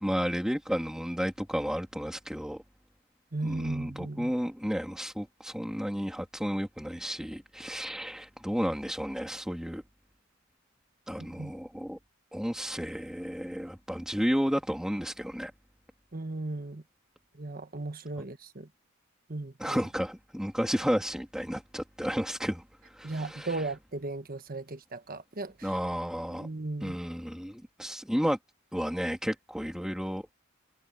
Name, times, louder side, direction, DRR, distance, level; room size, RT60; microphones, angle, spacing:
voice 1, 0.0-2.6 3.4-9.8 11.1-12.0 12.3-15.5 18.2-18.3 19.6-23.7 25.6-26.5 26.8-28.4 28.7-30.2, equal, 5° right, 2.9 m, -32 dB
voice 2, 3.3-4.3 11.2-11.5 16.1-16.8 17.4-18.7 19.3-19.8 23.0-25.7 26.3-27.0, right 2 dB, 45° right, 1.3 m, -36 dB
head